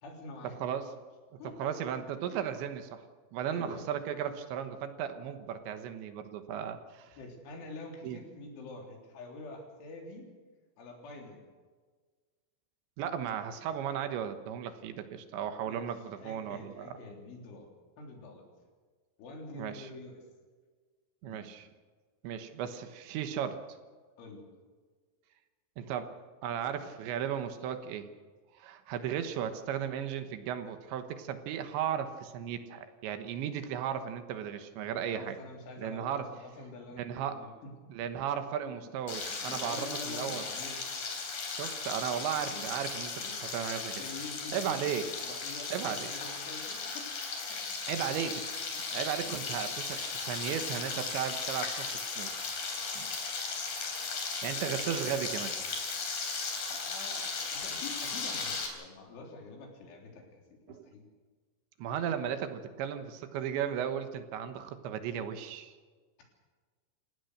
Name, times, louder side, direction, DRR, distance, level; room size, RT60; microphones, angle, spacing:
voice 1, 0.0-0.7 1.4-1.9 3.5-4.0 7.2-10.3 10.8-11.5 15.6-17.7 18.0-18.5 19.2-20.2 21.2-21.5 24.2-24.5 35.1-37.7 38.6-38.8 39.4-40.8 42.5-42.6 43.2-43.3 44.0-44.8 45.2-47.1 47.5-47.8 48.7-48.9 56.8-61.1, left 3 dB, 80° left, 1 dB, 5.9 m, -46 dB
voice 2, 1.6-3.0 3.3-7.2 8.0-8.2 13.0-16.9 19.5-19.9 21.2-21.7 22.2-23.6 25.8-26.1 26.4-28.1 28.6-35.4 35.8-36.3 37.0-37.4 37.9-40.4 41.6-43.2 43.5-44.0 44.5-45.1 45.7-46.1 47.9-48.6 48.9-51.9 52.2-52.5 52.9-53.1 54.4-55.5 60.7-60.9 61.8-65.7, right 9 dB, 75° right, 8 dB, 3.4 m, -35 dB
Frying (food), 39.1-58.7, left 4 dB, 50° left, 4.6 m, -36 dB
28.5 x 16.5 x 6.7 m, 1.5 s
omnidirectional pair, 5.4 m